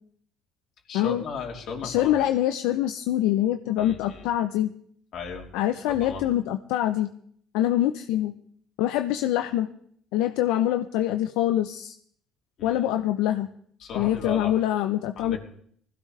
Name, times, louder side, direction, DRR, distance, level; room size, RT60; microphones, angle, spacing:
voice 1, 0.9-2.3 3.8-4.3 5.1-5.4 5.9-6.3 12.6-12.8 13.8-14.5 15.2-15.4, left 4 dB, 60° left, 1 dB, 3.3 m, -36 dB
voice 2, 1.8-4.7 5.5-7.1 7.5-8.3 8.8-9.7 10.1-11.9 12.6-13.5 13.9-15.4, left 12 dB, 85° left, 8 dB, 0.6 m, -24 dB
20.5 x 15.5 x 3.3 m, 0.63 s
cardioid pair, 110°, 0 cm